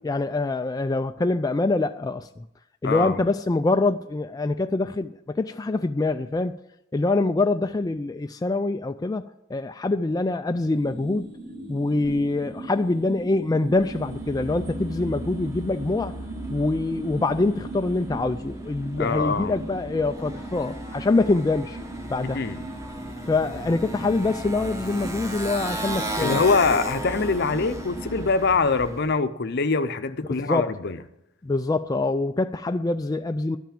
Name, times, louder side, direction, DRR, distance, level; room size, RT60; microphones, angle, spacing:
voice 1, 0.0-2.4 2.8-6.5 6.9-9.2 9.5-11.3 11.7-16.1 16.5-21.8 22.1-22.5 23.2-26.4 30.5-30.8 31.4-33.6, left 2 dB, 20° left, 0.3 m, -25 dB
voice 2, 2.8-3.2 19.0-19.6 22.3-22.6 26.2-31.0, left 4 dB, 55° left, 0.7 m, -24 dB
sound 1, 10.7-28.3, right 1 dB, 40° right, 1.9 m, -38 dB
Motorcycle, 13.7-29.1, right 1 dB, 15° right, 1.2 m, -36 dB
12.5 x 5.8 x 8.8 m
head